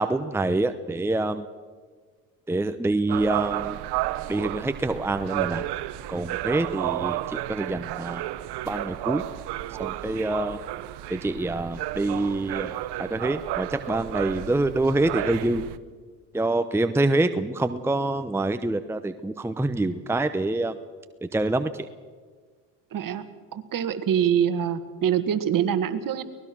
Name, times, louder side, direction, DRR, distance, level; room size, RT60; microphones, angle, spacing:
voice 1, 0.0-1.5 2.5-3.8 4.3-5.7 6.1-8.2 8.7-9.2 9.8-10.6 11.1-15.7 16.3-20.8 21.2-21.9, right 2 dB, 5° right, 9 dB, 0.8 m, -26 dB
sound 1, 3.1-15.8, right 15 dB, 60° right, 1.0 m, -32 dB
voice 2, 22.9-23.2 23.5-26.2, right 9 dB, 45° right, 10 dB, 1.8 m, -24 dB
24.0 x 19.0 x 6.2 m, 1.5 s
supercardioid pair, 80°, 45 cm